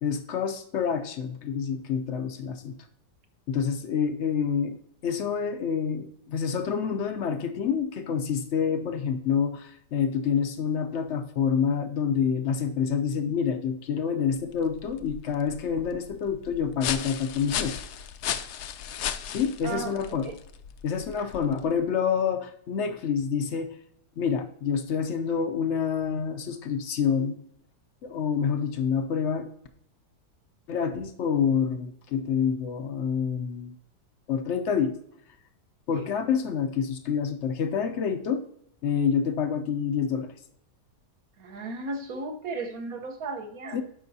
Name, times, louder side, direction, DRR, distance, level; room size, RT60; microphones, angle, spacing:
voice 1, 0.0-2.8 3.5-4.8 5.0-17.8 19.3-20.3 20.8-23.7 24.2-27.4 28.0-29.5 30.7-33.7 34.3-34.9 35.9-38.4 38.8-40.3 43.7-43.8, left 7 dB, 60° left, 7 dB, 0.7 m, -27 dB
sound 1, 14.4-21.8, left 9 dB, 75° left, 1.1 m, -36 dB
voice 2, 19.6-20.4 21.2-21.5 35.9-36.1 41.4-43.8, right 3 dB, 60° right, 5 dB, 1.4 m, -36 dB
12.0 x 5.6 x 2.7 m, 0.71 s
omnidirectional pair, 1.8 m